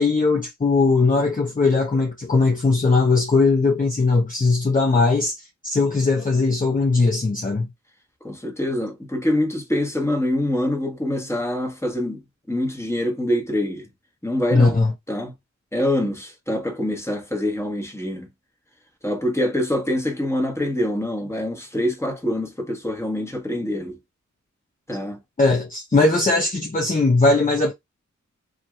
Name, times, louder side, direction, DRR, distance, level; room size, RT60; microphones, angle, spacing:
voice 1, 0.0-5.4 5.6-7.7 14.5-14.9 25.4-27.7, left 3 dB, 25° left, 0.7 m, -19 dB
voice 2, 8.2-12.2 12.5-13.9 14.2-14.8 15.1-15.3 15.7-18.3 19.0-24.0 24.9-25.2, left 1 dB, 10° left, 1.2 m, -25 dB
2.6 x 2.5 x 3.1 m
cardioid pair, 40°, 31 cm